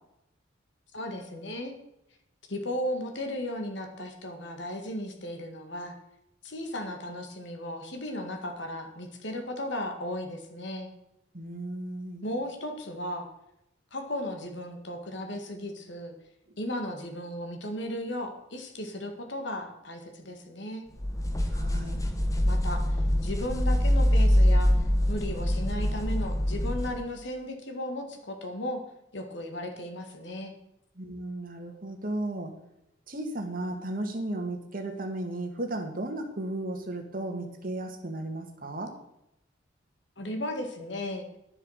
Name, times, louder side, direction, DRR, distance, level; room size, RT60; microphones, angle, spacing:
voice 1, 0.9-1.7 2.5-6.0 6.4-10.9 12.2-13.3 13.9-16.1 16.6-20.9 22.5-23.0 23.2-24.7 25.1-28.8 29.1-30.5 40.2-41.2, left 1 dB, 60° left, 4 dB, 1.9 m, -35 dB
voice 2, 11.3-12.3 21.5-22.0 31.0-32.5 33.1-39.0, right 1 dB, 45° right, 4 dB, 1.9 m, -35 dB
sound 1, 21.0-27.0, equal, 15° left, 1.1 m, -24 dB
11.0 x 7.4 x 6.5 m, 0.82 s
head